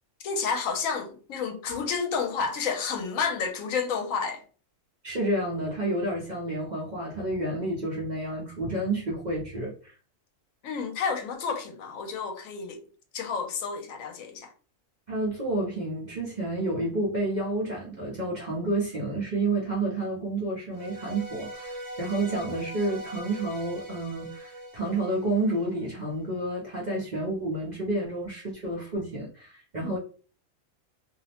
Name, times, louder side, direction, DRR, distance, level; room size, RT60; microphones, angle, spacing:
voice 1, 0.2-4.4 10.6-12.8 13.1-14.5 29.8-30.0, left 5 dB, 80° left, 1.0 m, -30 dB
voice 2, 5.0-9.9 15.1-30.0, right 2 dB, 45° right, 0.6 m, -30 dB
sound 1, 20.7-25.9, right 1 dB, 25° right, 0.9 m, -41 dB
2.5 x 2.0 x 2.8 m
omnidirectional pair, 1.4 m